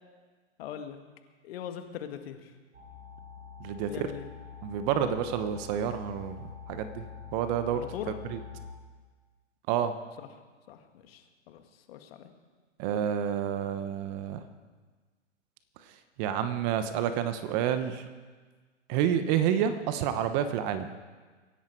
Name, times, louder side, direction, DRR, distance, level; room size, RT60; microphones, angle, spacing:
voice 1, 0.6-1.0 1.4-2.5 3.9-4.3 5.0-5.2 7.7-8.2 10.2-10.3 10.7-11.6 11.9-12.3, left 9 dB, 50° left, 7 dB, 1.9 m, -41 dB
sound 1, 2.7-8.7, left 7 dB, 85° right, 5.5 m, -45 dB
voice 2, 3.6-4.1 4.6-7.0 7.3-7.8 8.3-8.4 9.7-9.9 12.8-14.4 16.2-18.0 18.9-20.9, right 9 dB, 35° right, 10 dB, 1.1 m, -29 dB
24.0 x 10.5 x 4.7 m, 1.4 s
hypercardioid pair, 125°, 37 cm